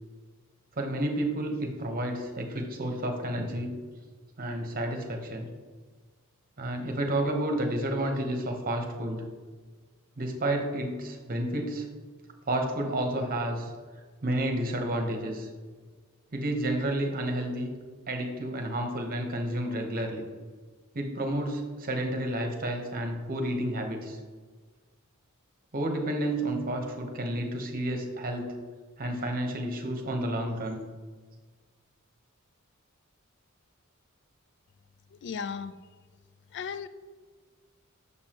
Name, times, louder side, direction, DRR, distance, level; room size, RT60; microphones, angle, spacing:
voice 1, 0.8-3.7 4.4-5.5 6.6-9.2 10.2-11.9 12.5-13.7 14.2-15.5 16.3-17.7 18.1-20.2 20.9-24.2 25.7-28.5 29.0-30.8, right 1 dB, 45° right, 3 dB, 1.0 m, -30 dB
voice 2, 35.1-35.8 36.5-36.9, left 6 dB, 55° left, 12 dB, 0.3 m, -35 dB
6.9 x 6.7 x 2.9 m, 1.4 s
head